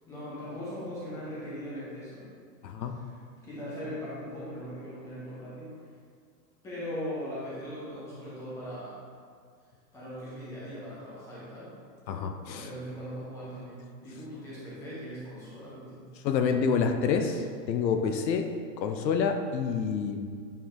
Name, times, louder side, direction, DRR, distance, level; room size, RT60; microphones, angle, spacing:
voice 1, 0.1-2.3 2.9-3.1 3.4-5.8 6.6-9.0 9.9-11.7 12.5-16.1 17.3-17.4, equal, 5° left, -9 dB, 1.1 m, -39 dB
voice 2, 2.6-3.0 12.1-12.7 16.2-18.5 18.8-20.3, left 6 dB, 80° left, 6 dB, 0.9 m, -28 dB
8.9 x 4.6 x 3.8 m, 2.1 s
supercardioid pair, 175°, 50 cm